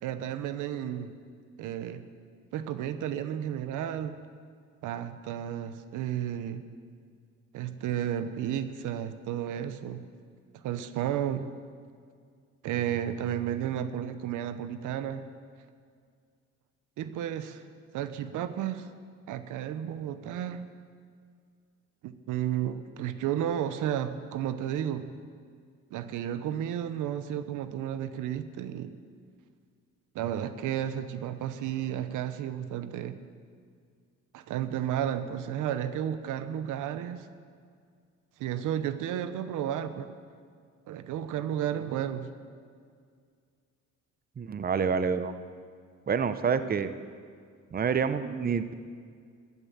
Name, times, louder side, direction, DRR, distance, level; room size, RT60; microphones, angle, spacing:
voice 1, 0.0-1.2 1.6-2.0 2.5-4.2 4.8-6.6 7.5-10.0 10.5-11.5 12.6-15.2 17.0-17.6 17.9-18.9 19.3-20.6 22.0-25.1 25.9-29.0 30.1-33.2 34.3-37.3 38.4-40.2 40.9-42.3, right 10 dB, 85° right, 12 dB, 0.8 m, -32 dB
voice 2, 44.4-45.3 46.1-46.9 47.7-48.7, right 6 dB, 30° right, 12 dB, 0.7 m, -27 dB
12.5 x 11.0 x 7.2 m, 2.1 s
cardioid pair, 90°, 30 cm